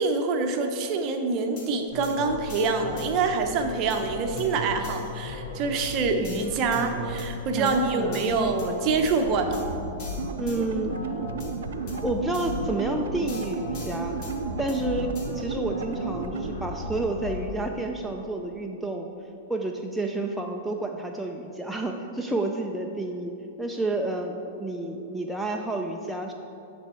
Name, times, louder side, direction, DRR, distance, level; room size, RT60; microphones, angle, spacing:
voice 1, 0.0-9.6, right 4 dB, 40° right, 5 dB, 0.7 m, -26 dB
sound 1, 1.6-1.7 2.0-2.1 2.5-3.1 3.9-4.0 4.4-4.5 4.8-5.1 5.8-6.8 7.2-7.3 7.6-7.8 8.1-8.7 9.1-9.2 9.5-9.6 10.0-10.6 11.4-11.5 11.9-12.0 12.3-12.6 13.3-14.3 14.7-14.8 15.1-15.3, left 3 dB, 45° left, 1.5 m, -44 dB
sound 2, 1.9-17.7, left 2 dB, 80° left, 1.4 m, -36 dB
voice 2, 7.6-8.4 10.4-10.9 12.0-14.1 14.6-19.1 19.5-23.3 23.6-26.3, right 2 dB, 5° right, 1 dB, 0.4 m, -30 dB
sound 3, 10.2-16.5, right 7 dB, 75° right, 0.4 m, -34 dB
9.9 x 3.5 x 4.3 m, 2.8 s
hypercardioid pair, 130°, 0 cm